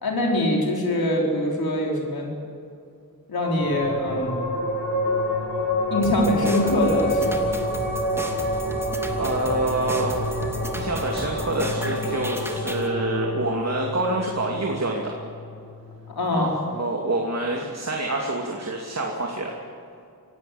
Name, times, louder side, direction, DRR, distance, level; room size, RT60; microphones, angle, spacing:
voice 1, 0.0-2.3 3.3-4.5 5.9-7.5 16.1-16.6, left 1 dB, 85° left, 0 dB, 5.1 m, -23 dB
sound 1, 3.3-16.2, left 1 dB, 35° left, 7.7 m, -28 dB
sound 2, 6.0-12.9, right 1 dB, 5° right, 2.5 m, -35 dB
voice 2, 9.2-15.1 16.3-19.5, right 2 dB, 45° right, 0 dB, 2.7 m, -27 dB
26.0 x 17.0 x 7.9 m, 2.5 s
wide cardioid pair, 90°, 35 cm